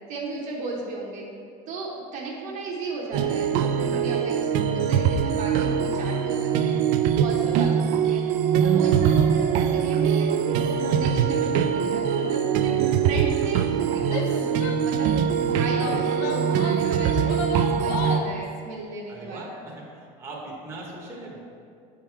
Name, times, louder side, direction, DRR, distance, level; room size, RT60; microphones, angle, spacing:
voice 1, 0.1-1.2 1.7-4.5 4.7-6.8 7.1-8.2 8.6-17.4 17.7-19.4, right 3 dB, 45° right, -3 dB, 0.9 m, -35 dB
sound 1, 3.1-18.2, right 8 dB, 60° right, 0.4 m, -23 dB
Female speech woman speaking / Yell, 14.0-15.3 15.8-18.4, left 4 dB, 80° left, 0.6 m, -34 dB
voice 2, 19.1-21.4, right 2 dB, 15° right, -4 dB, 1.0 m, -40 dB
8.4 x 3.6 x 4.4 m, 2.3 s
cardioid pair, 180°, 18 cm